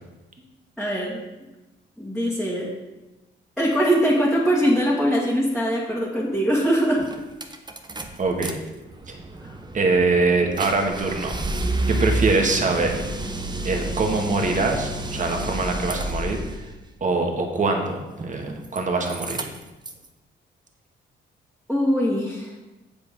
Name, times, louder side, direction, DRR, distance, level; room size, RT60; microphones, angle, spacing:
voice 1, 0.8-1.2 2.0-2.7 3.6-7.0 9.4-9.6 21.7-22.5, equal, ahead, -6 dB, 2.1 m, -22 dB
sound 1, 6.5-6.6 7.0-8.5 8.9-16.6 18.1-18.8 19.1-20.1, right 2 dB, 20° right, 1.0 m, -30 dB
voice 2, 8.2-8.6 9.1-9.2 9.7-11.3 11.9-13.0 13.6-16.4 17.0-19.5, right 3 dB, 40° right, 3 dB, 1.8 m, -23 dB
8.2 x 7.3 x 5.2 m, 1.1 s
cardioid pair, 90°, 20 cm